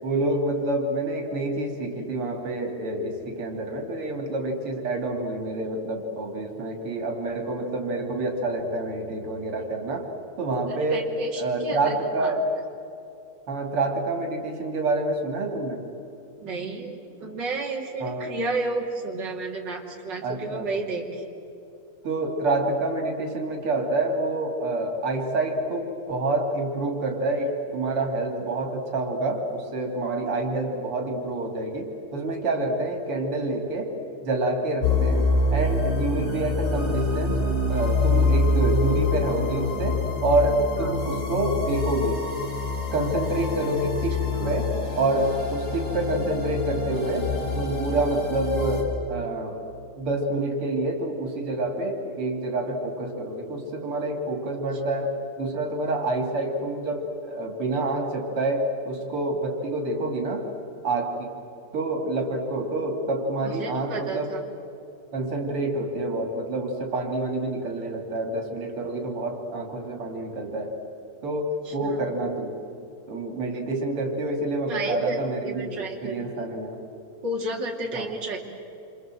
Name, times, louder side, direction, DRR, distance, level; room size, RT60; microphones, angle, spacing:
voice 1, 0.0-10.1 10.4-12.4 13.5-15.9 18.0-18.4 20.2-20.7 22.0-33.9 34.2-37.4 37.7-42.3 42.9-49.6 50.0-60.5 60.8-61.3 61.7-64.3 65.1-70.7 71.2-72.6 73.1-76.8 77.9-78.1, right 2 dB, 85° right, 3 dB, 3.7 m, -27 dB
voice 2, 10.7-12.4 16.4-21.2 40.8-41.0 44.3-44.5 63.4-64.4 71.7-72.0 74.7-75.2 75.4-76.2 77.2-78.4, right 2 dB, 55° right, -1 dB, 3.5 m, -32 dB
sound 1, 34.8-48.8, left 3 dB, 45° left, 5.6 m, -26 dB
28.0 x 26.5 x 7.7 m, 2.7 s
omnidirectional pair, 2.4 m